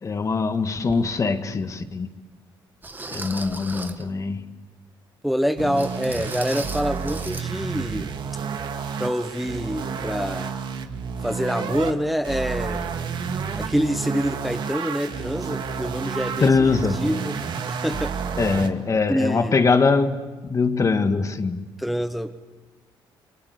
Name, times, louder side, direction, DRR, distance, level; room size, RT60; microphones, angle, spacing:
voice 1, 0.0-2.1 3.1-4.5 16.4-17.0 18.4-21.7, left 4 dB, 35° left, 1.8 m, -22 dB
sound 1, 0.9-1.0 1.7-1.8 2.8-4.1 5.8-7.5 7.7-7.9 8.4-8.5, right 3 dB, 20° right, 1.5 m, -37 dB
voice 2, 5.2-8.1 9.0-10.6 11.2-12.8 13.1-18.1 19.1-19.5 21.8-22.4, equal, ahead, 1.3 m, -26 dB
sound 2, 5.6-11.9 12.2-18.7, right 6 dB, 55° right, 2.1 m, -30 dB
29.5 x 23.0 x 8.4 m
cardioid pair, 85°, 9 cm